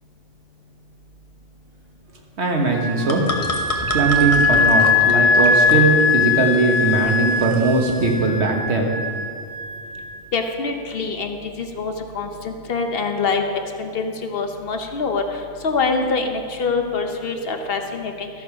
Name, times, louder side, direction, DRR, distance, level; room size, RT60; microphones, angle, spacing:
voice 1, 2.4-3.3 3.9-9.0, right 3 dB, 75° right, 1 dB, 1.5 m, -19 dB
sound 1, 2.7-8.2, left 2 dB, 35° left, 0.9 m, -32 dB
Wind instrument woodwind instrument, 2.7-10.1, left 4 dB, 60° right, 2.0 m, -20 dB
voice 2, 10.3-13.4 13.8-18.3, left 4 dB, 60° left, 5 dB, 1.0 m, -25 dB
13.0 x 6.5 x 4.9 m, 2.2 s
omnidirectional pair, 1.1 m